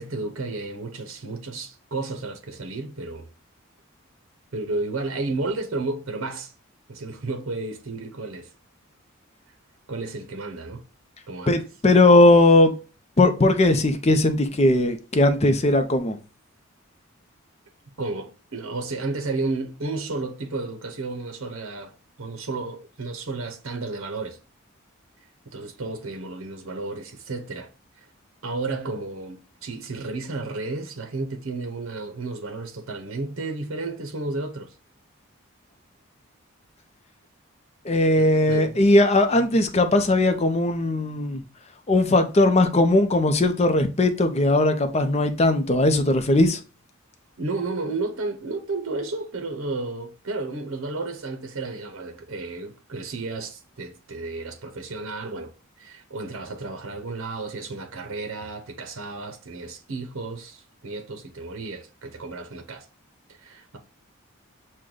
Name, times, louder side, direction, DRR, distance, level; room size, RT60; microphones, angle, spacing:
voice 1, 0.0-3.3 4.5-6.5 6.9-8.5 9.9-10.8 11.3-11.6 18.0-21.9 22.2-24.4 25.4-27.7 28.0-28.1 28.4-34.7 38.2-38.8 47.4-55.5 55.8-62.9 63.3-63.8, right 3 dB, 70° right, 0.7 m, -32 dB
voice 2, 11.5-12.7 13.2-16.2 37.8-41.4 41.9-46.6, left 2 dB, 30° left, 0.5 m, -19 dB
6.2 x 2.2 x 3.8 m
head